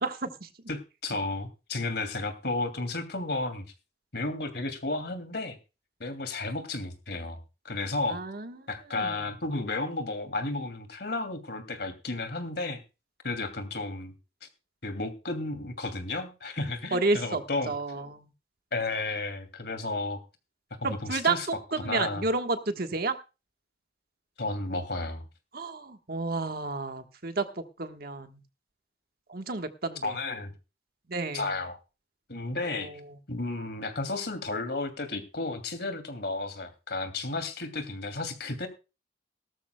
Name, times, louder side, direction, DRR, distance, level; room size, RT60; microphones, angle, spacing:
voice 1, 0.0-0.5 8.1-8.6 8.9-9.2 16.9-18.3 20.8-23.2 25.5-28.4 29.3-30.2 31.1-31.5 32.6-33.0, right 3 dB, 55° right, 7 dB, 1.4 m, -31 dB
voice 2, 0.7-3.6 4.1-5.6 6.0-7.4 7.6-8.2 8.7-12.8 13.2-14.1 14.8-17.7 18.7-20.2 20.8-21.5 21.8-22.2 24.4-25.2 30.0-30.5 31.3-31.8 32.3-32.9 33.3-38.7, left 2 dB, 60° left, 9 dB, 2.6 m, -33 dB
18.5 x 13.0 x 2.2 m, 0.30 s
head